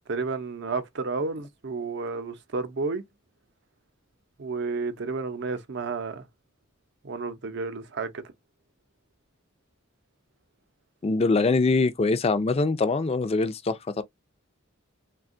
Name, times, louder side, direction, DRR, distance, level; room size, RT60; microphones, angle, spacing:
voice 1, 0.1-3.0 4.4-6.2 7.0-8.2, right 4 dB, 60° right, 0.6 m, -31 dB
voice 2, 11.0-14.0, left 3 dB, 30° left, 0.4 m, -23 dB
3.4 x 2.2 x 2.4 m
head